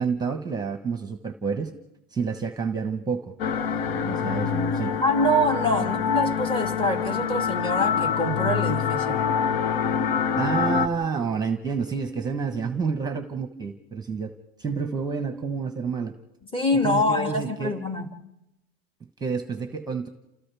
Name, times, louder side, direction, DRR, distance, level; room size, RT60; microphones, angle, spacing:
voice 1, 0.0-1.7 2.1-3.3 3.8-4.9 5.8-5.9 10.4-14.3 14.6-16.1 16.7-17.8 19.2-20.1, right 5 dB, 15° right, 1.2 m, -29 dB
sound 1, 3.4-10.9, left 7 dB, 80° left, 1.2 m, -25 dB
voice 2, 5.0-9.2 16.5-18.1, left 1 dB, 15° left, 2.3 m, -25 dB
29.0 x 28.0 x 3.5 m
supercardioid pair, 120°, 30 cm